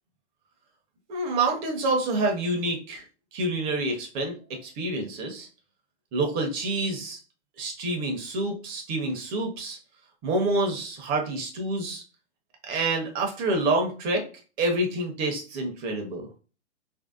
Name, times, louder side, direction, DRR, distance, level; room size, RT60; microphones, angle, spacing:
voice 1, 1.1-3.0 3.3-4.3 4.6-5.5 6.1-7.2 7.6-9.8 10.2-12.0 12.7-14.2 14.6-16.3, right 2 dB, 25° right, 2 dB, 0.7 m, -27 dB
3.1 x 2.6 x 2.3 m, 0.35 s
hypercardioid pair, 125°, 34 cm